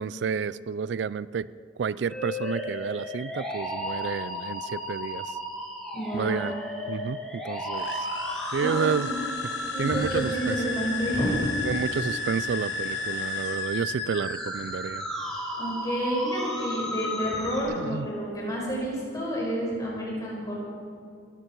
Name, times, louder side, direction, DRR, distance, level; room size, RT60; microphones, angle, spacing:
voice 1, 0.0-1.5 1.8-5.4 6.1-6.5 6.9-8.1 8.5-9.1 9.8-10.6 11.6-15.1 17.7-18.1, right 6 dB, 80° right, 18 dB, 0.4 m, -30 dB
sound 1, 2.1-17.6, left 1 dB, 5° left, 3.1 m, -33 dB
voice 2, 5.9-6.5 8.6-9.2 9.7-11.4 15.6-20.5, right 1 dB, 20° left, -4 dB, 5.2 m, -30 dB
sound 2, 7.7-14.1, left 5 dB, 75° left, 1.1 m, -39 dB
21.5 x 14.0 x 4.6 m, 2.5 s
head